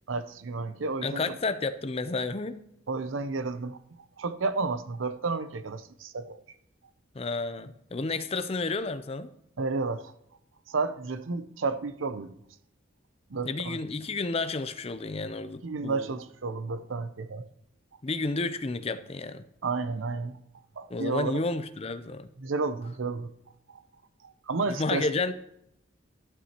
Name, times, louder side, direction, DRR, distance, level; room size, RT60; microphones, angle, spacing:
voice 1, 0.1-1.4 2.9-3.8 4.2-6.4 9.6-10.1 10.7-12.4 13.3-13.8 15.6-17.5 19.6-20.4 20.8-21.4 22.4-23.3 23.7-23.8 24.2-25.1, right 4 dB, 85° right, 0.6 m, -31 dB
voice 2, 1.0-2.6 7.1-9.3 13.4-16.1 18.0-19.4 20.9-22.3 24.7-25.3, left 3 dB, 30° left, 0.5 m, -31 dB
12.5 x 11.0 x 2.9 m
head